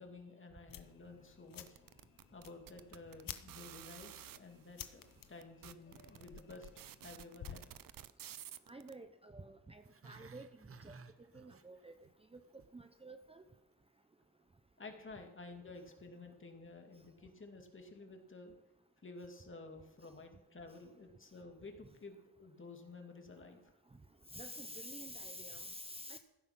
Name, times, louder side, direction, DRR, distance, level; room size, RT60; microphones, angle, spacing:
voice 1, 0.0-1.8 2.3-5.0 5.3-6.7 7.0-7.6 14.8-18.5 19.0-23.6, left 3 dB, 40° left, 4 dB, 2.4 m, -52 dB
sound 1, 0.7-7.8, left 10 dB, 85° left, 1.0 m, -53 dB
sound 2, 1.5-4.4 5.1-5.2 5.4-8.9, right 11 dB, 85° right, 0.7 m, -52 dB
voice 2, 8.7-10.5 10.8-11.0 11.3-11.9 12.3-12.4 12.7-13.4 24.3-26.2, equal, 15° right, 8 dB, 0.8 m, -49 dB
Growling, 9.8-12.1 12.4-12.8 13.1-13.2, right 5 dB, 45° right, 1.0 m, -56 dB
16.0 x 9.7 x 6.1 m, 1.0 s
wide cardioid pair, 110°, 33 cm